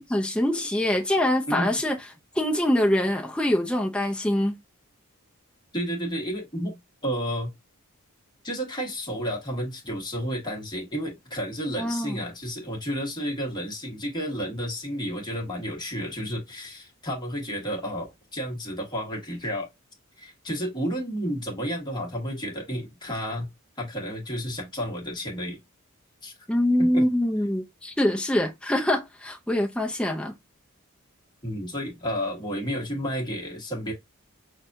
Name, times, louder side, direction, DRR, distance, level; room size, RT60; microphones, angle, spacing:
voice 1, 0.1-2.0 2.3-4.6 11.8-12.2 26.5-30.3, left 1 dB, 5° left, 0.6 m, -24 dB
voice 2, 5.7-6.7 7.0-7.5 8.4-19.7 20.2-23.5 23.8-25.6 26.2-26.3 26.8-27.1 31.4-33.9, equal, 20° left, 1.4 m, -31 dB
5.9 x 2.3 x 2.6 m
head